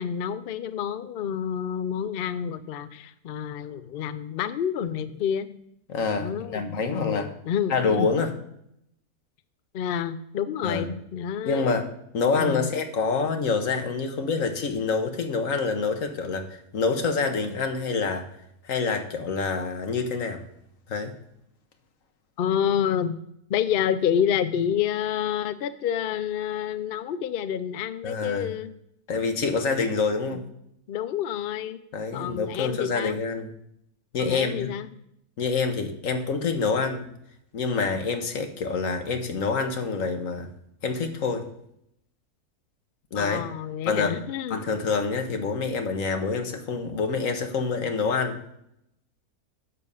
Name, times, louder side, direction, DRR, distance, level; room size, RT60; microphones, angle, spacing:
voice 1, 0.0-5.5 6.2-8.1 9.7-11.7 12.4-12.7 22.4-23.2 23.5-28.7 30.3-30.4 30.9-31.8 32.1-33.2 34.2-34.9 43.1-44.6, left 9 dB, 80° left, 12 dB, 0.5 m, -28 dB
voice 2, 5.9-7.3 7.7-8.3 10.6-10.9 11.4-11.9 12.1-18.3 18.6-20.4 20.9-21.1 28.0-28.5 29.1-30.4 31.9-33.5 34.1-34.7 35.4-37.1 37.5-40.5 40.8-41.5 43.1-43.4 43.9-44.2 44.5-48.4, left 4 dB, 60° left, 6 dB, 1.5 m, -26 dB
7.3 x 6.9 x 5.4 m, 0.77 s
omnidirectional pair, 1.6 m